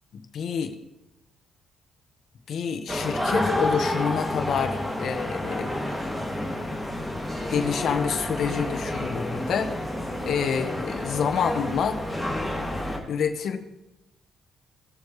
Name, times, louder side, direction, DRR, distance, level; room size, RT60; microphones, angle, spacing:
voice 1, 0.1-0.7 2.5-5.7 7.5-9.7 10.2-12.0 13.1-13.6, left 7 dB, 65° left, 5 dB, 1.4 m, -27 dB
sound 1, 2.9-13.0, left 1 dB, 5° right, 2.5 m, -29 dB
18.5 x 7.1 x 3.3 m, 0.91 s
cardioid pair, 90°, 0 cm